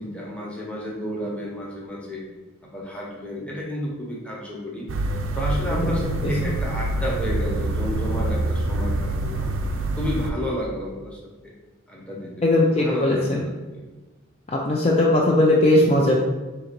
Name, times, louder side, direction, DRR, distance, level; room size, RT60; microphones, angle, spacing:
voice 1, 0.0-2.3 2.6-4.9 5.4-9.5 10.0-11.5 11.9-13.8, equal, 5° left, -4 dB, 0.8 m, -31 dB
sound 1, 4.9-10.3, right 2 dB, 75° right, 0.4 m, -26 dB
voice 2, 12.4-13.4 14.5-16.2, left 1 dB, 30° left, -3 dB, 0.4 m, -19 dB
3.9 x 2.9 x 4.4 m, 1.2 s
head